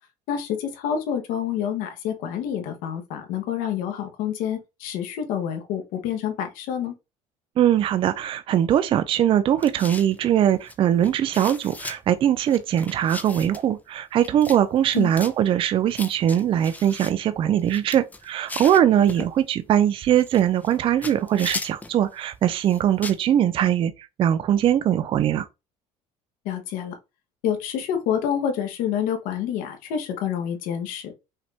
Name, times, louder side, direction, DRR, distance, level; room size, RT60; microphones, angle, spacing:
voice 1, 0.3-6.9 14.9-15.1 19.0-19.2 26.4-27.0 27.4-31.1, left 9 dB, 80° left, 1.1 m, -28 dB
voice 2, 7.6-25.5, right 10 dB, 40° right, 0.4 m, -21 dB
sound 1, 9.6-10.2 10.7-10.8 11.0-12.0 12.4-13.7 14.2-14.6 14.8-15.3 15.9-17.1 17.6-19.3 20.1-20.8 21.0-22.0 22.6-23.2, left 2 dB, 10° left, 0.6 m, -37 dB
5.6 x 2.6 x 3.3 m
cardioid pair, 125°, 14 cm